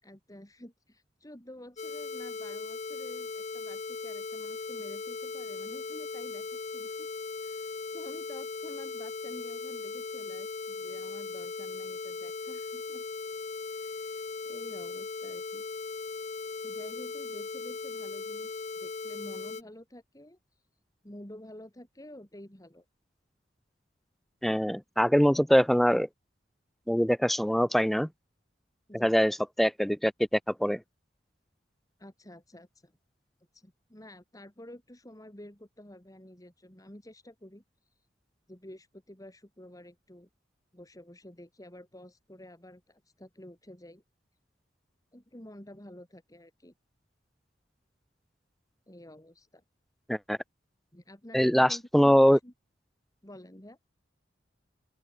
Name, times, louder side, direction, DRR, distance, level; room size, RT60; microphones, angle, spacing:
voice 1, 0.0-7.1 7.4-13.0 13.7-15.7 16.6-20.6 21.0-22.8 28.9-29.2 32.0-32.9 33.5-37.6 38.5-40.3 40.7-44.0 45.1-46.7 48.9-49.6 50.9-52.5 53.2-53.8, left 1 dB, 20° left, 2.9 m, -50 dB
sound 1, 1.8-19.6, left 4 dB, 40° left, 0.7 m, -38 dB
voice 2, 24.4-26.1 26.9-28.1 28.9-30.8 50.1-50.4 51.3-52.4, equal, ahead, 0.4 m, -23 dB
open air
head